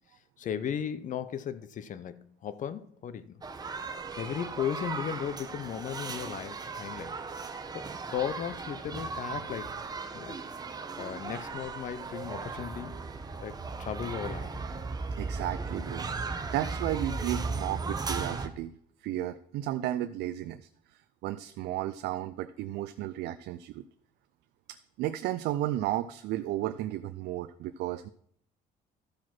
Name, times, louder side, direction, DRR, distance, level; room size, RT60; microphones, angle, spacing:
voice 1, 0.4-3.4 4.2-7.1 7.7-9.8 10.1-10.4 11.0-13.0 13.4-14.5, left 9 dB, 50° left, 0.7 m, -36 dB
sound 1, 3.4-18.5, right 4 dB, 25° right, 0.9 m, -37 dB
voice 2, 15.2-18.7 19.0-23.8 24.7-28.1, right 13 dB, 80° right, 0.5 m, -34 dB
13.0 x 4.9 x 5.9 m
cardioid pair, 110°, 17 cm